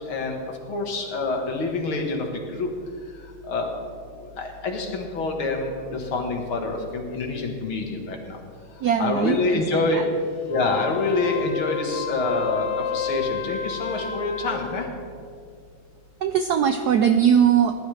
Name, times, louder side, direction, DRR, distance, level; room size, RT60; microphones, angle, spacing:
voice 1, 0.7-2.7 3.5-3.7 4.2-8.4 9.0-10.0 10.5-14.9, left 3 dB, 70° left, 2 dB, 2.4 m, -26 dB
voice 2, 8.8-10.0 16.2-17.8, right 8 dB, 90° right, 7 dB, 0.8 m, -20 dB
Wind instrument woodwind instrument, 10.4-14.7, left 7 dB, 55° left, 2.7 m, -31 dB
19.0 x 11.5 x 3.3 m, 2.2 s
omnidirectional pair, 2.4 m